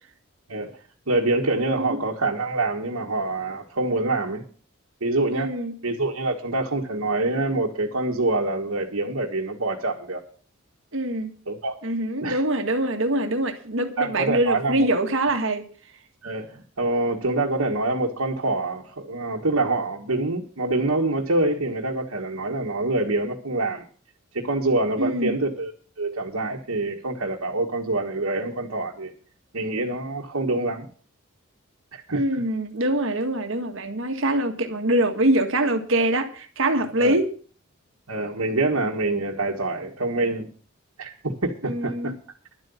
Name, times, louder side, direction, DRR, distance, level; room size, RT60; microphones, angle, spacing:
voice 1, 1.1-4.4 5.0-5.5 5.8-10.2 11.5-11.8 12.2-12.4 14.0-14.9 16.2-23.9 24.3-25.7 26.0-29.1 29.5-30.9 31.9-32.2 37.0-37.2 38.1-40.5 41.0-42.1, right 2 dB, 90° right, -2 dB, 1.7 m, -26 dB
voice 2, 5.3-5.8 10.9-11.3 11.8-15.6 25.0-25.4 32.1-37.3 41.6-42.1, right 1 dB, 65° right, 6 dB, 1.8 m, -24 dB
11.5 x 8.0 x 7.1 m, 0.42 s
head